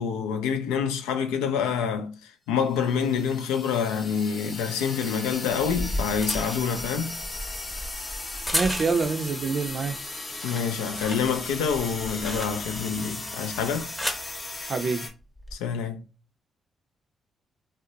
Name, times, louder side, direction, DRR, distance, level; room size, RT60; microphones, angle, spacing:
voice 1, 0.0-2.1 2.5-7.2 10.4-13.9 15.5-16.0, left 7 dB, 80° left, 0.3 m, -27 dB
sound 1, 2.7-15.1, left 2 dB, 40° left, 0.8 m, -37 dB
sound 2, 5.6-9.2 9.7-10.0 10.3-12.9 13.6-14.3 15.2-15.5, equal, 5° left, 0.7 m, -34 dB
voice 2, 8.5-10.0 14.7-15.1, right 4 dB, 55° right, 0.4 m, -26 dB
2.5 x 2.0 x 2.7 m
hypercardioid pair, 40°, 0 cm